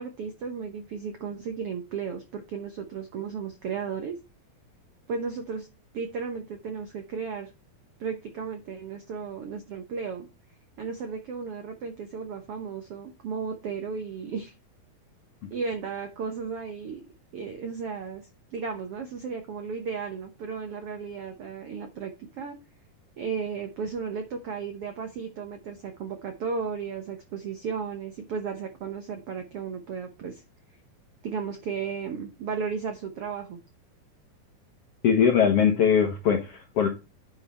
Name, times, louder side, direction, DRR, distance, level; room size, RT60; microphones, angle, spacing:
voice 1, 0.0-4.2 5.1-5.7 5.9-7.5 8.0-10.3 10.8-14.5 15.5-17.0 17.3-22.5 23.2-30.4 31.2-33.6, right 5 dB, 75° right, 6 dB, 1.3 m, -34 dB
voice 2, 35.0-36.9, left 7 dB, 65° left, 3 dB, 1.5 m, -21 dB
9.7 x 5.2 x 4.3 m, 0.27 s
omnidirectional pair, 4.2 m